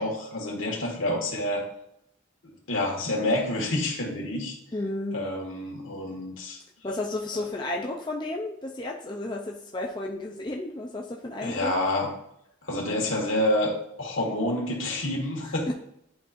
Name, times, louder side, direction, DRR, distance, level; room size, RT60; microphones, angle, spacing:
voice 1, 0.0-1.6 2.4-4.5 5.1-6.6 11.4-12.1 12.6-13.7 14.0-15.7, left 1 dB, 75° left, 0 dB, 1.7 m, -28 dB
voice 2, 4.7-5.2 6.8-11.7 15.7-15.8, left 2 dB, 20° left, 0 dB, 0.5 m, -32 dB
10.5 x 4.2 x 2.5 m, 0.76 s
head